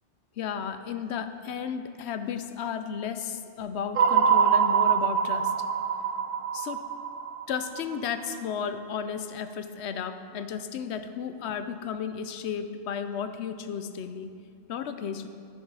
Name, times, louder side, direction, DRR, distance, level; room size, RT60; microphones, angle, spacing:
voice 1, 0.4-5.6 6.5-6.8 7.5-14.3 14.7-15.3, left 7 dB, 70° left, 9 dB, 0.8 m, -33 dB
sound 1, 4.0-8.2, right 7 dB, 55° right, 0.8 m, -24 dB
13.0 x 7.2 x 4.7 m, 2.4 s
omnidirectional pair, 1.2 m